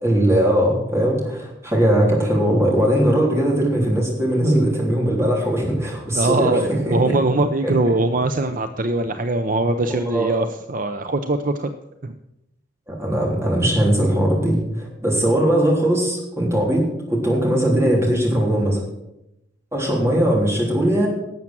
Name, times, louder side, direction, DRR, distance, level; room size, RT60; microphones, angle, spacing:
voice 1, 0.0-7.1 7.6-7.7 9.9-10.3 12.9-18.8 19.7-21.1, right 1 dB, 15° right, -2 dB, 3.3 m, -20 dB
voice 2, 6.1-11.7 12.0-12.1, right 2 dB, 45° right, 8 dB, 0.6 m, -21 dB
12.0 x 7.3 x 7.5 m, 0.88 s
head